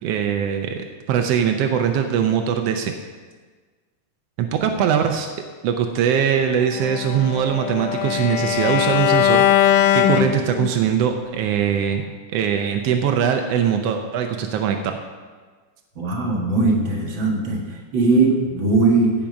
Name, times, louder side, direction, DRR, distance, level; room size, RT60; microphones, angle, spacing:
voice 1, 0.0-2.9 4.4-5.3 5.6-12.0 12.3-15.0, right 8 dB, 90° right, 5 dB, 1.3 m, -21 dB
Bowed string instrument, 6.8-10.9, left 11 dB, 85° left, 2.2 m, -20 dB
voice 2, 16.0-19.1, right 3 dB, 45° right, -1 dB, 1.9 m, -20 dB
15.5 x 6.0 x 5.2 m, 1.4 s
omnidirectional pair, 3.7 m